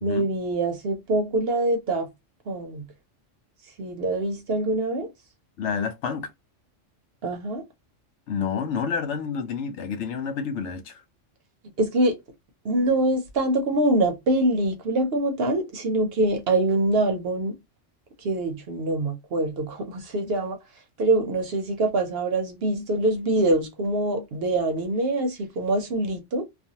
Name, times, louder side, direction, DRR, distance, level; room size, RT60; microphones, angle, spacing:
voice 1, 0.0-2.1 2.5-2.9 3.8-5.1 7.2-7.6 11.8-12.1 12.6-17.6 18.2-20.6 21.0-26.4, right 2 dB, 60° right, 0.8 m, -24 dB
voice 2, 5.6-6.3 8.3-11.0, left 6 dB, 75° left, 0.9 m, -29 dB
2.5 x 2.3 x 2.7 m
omnidirectional pair, 1.3 m